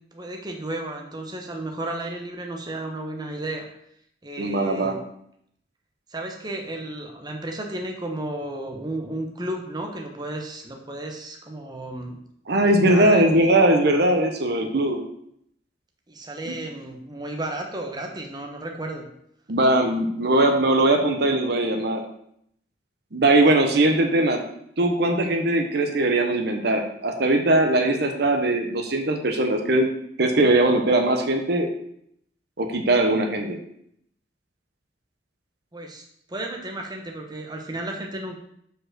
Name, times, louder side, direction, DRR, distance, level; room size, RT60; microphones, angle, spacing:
voice 1, 0.1-3.6 4.2-4.9 6.1-12.2 12.5-13.5 16.1-19.1 23.6-23.7 35.7-36.0 36.3-38.4, right 1 dB, 25° right, 2 dB, 0.9 m, -33 dB
voice 2, 4.4-5.0 12.5-15.0 19.5-22.0 23.1-24.4 24.8-29.9 30.2-31.7 32.6-33.6, right 1 dB, 65° right, 4 dB, 0.9 m, -20 dB
5.3 x 4.5 x 6.1 m, 0.70 s
head